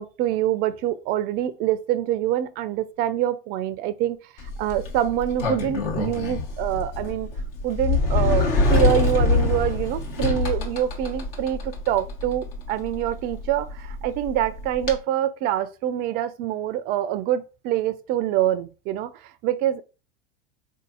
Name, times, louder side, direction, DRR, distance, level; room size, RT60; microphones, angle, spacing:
voice 1, 0.0-7.3 7.6-19.8, right 11 dB, 35° right, 0.4 m, -25 dB
Sliding door, 4.4-15.0, left 3 dB, 70° left, 1.1 m, -25 dB
3.8 x 2.6 x 2.4 m
figure-of-eight pair, 85°, 29 cm